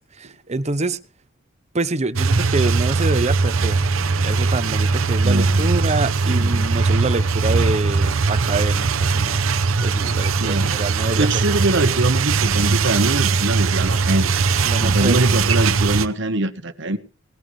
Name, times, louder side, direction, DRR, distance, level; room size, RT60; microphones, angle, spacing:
voice 1, 0.2-1.0 1.7-3.8 4.2-9.5 9.8-11.3 14.6-15.2, right 3 dB, 35° right, 0.8 m, -26 dB
sound 1, 2.2-16.1, right 4 dB, 85° right, 0.8 m, -20 dB
voice 2, 5.2-5.9 6.3-6.7 10.4-10.9 11.1-14.5 14.8-17.0, right 2 dB, 60° right, 1.3 m, -23 dB
18.5 x 14.5 x 3.2 m
head